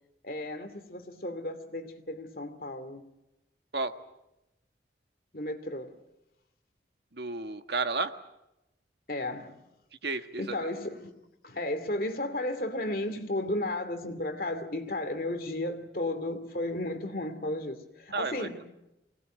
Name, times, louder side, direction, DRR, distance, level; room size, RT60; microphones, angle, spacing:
voice 1, 0.2-3.1 5.3-6.0 9.1-9.6 10.4-11.1 11.4-18.7, left 1 dB, 50° left, 2.6 m, -34 dB
voice 2, 7.1-8.1 10.0-10.6 18.1-18.6, right 3 dB, 70° right, 1.5 m, -32 dB
24.5 x 19.5 x 9.1 m
head